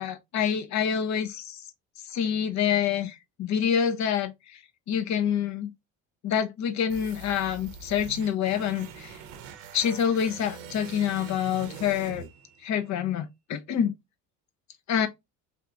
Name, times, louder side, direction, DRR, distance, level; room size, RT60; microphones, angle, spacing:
voice 1, 0.0-1.6 2.1-4.3 4.9-5.7 6.2-9.1 9.7-12.3 12.6-13.9 14.9-15.1, left 8 dB, 55° left, 0.7 m, -27 dB
sound 1, 6.9-12.9, right 6 dB, 80° right, 0.7 m, -44 dB
3.5 x 2.8 x 2.3 m
supercardioid pair, 85°, 35 cm